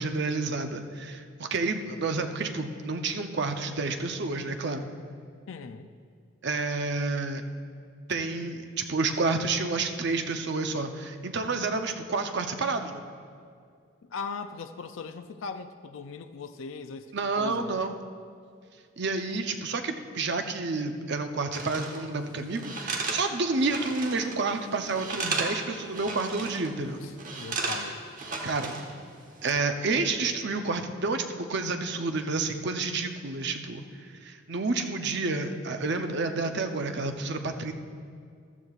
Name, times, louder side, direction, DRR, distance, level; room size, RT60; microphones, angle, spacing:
voice 1, 0.0-4.9 6.4-7.4 8.1-13.0 17.1-17.9 19.0-27.0 28.4-28.7 29.4-33.8 34.2-37.7, right 3 dB, 55° right, 6 dB, 0.7 m, -29 dB
voice 2, 5.5-5.9 14.0-17.9 27.0-28.0, left 5 dB, 70° left, 9 dB, 0.4 m, -39 dB
sound 1, 21.5-22.0 22.6-24.4 24.7-25.6 25.9-26.7 27.2-28.9 29.3-29.5, right 3 dB, 40° right, 1.1 m, -34 dB
14.5 x 12.5 x 2.4 m, 2.2 s
head